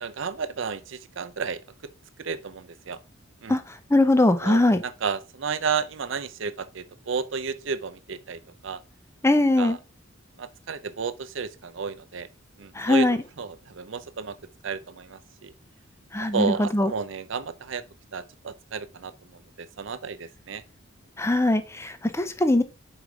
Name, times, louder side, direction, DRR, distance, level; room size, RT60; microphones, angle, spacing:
voice 1, 0.0-1.6 2.2-3.0 3.4-3.6 4.4-8.8 9.6-9.8 10.4-12.3 12.6-13.1 13.4-14.4 14.6-15.5 16.3-17.8 18.1-20.6, right 5 dB, 70° right, 0.6 m, -32 dB
voice 2, 3.9-4.8 9.2-9.8 12.8-13.2 16.1-16.9 21.2-22.6, left 1 dB, 15° left, 0.6 m, -21 dB
4.9 x 4.8 x 5.0 m
head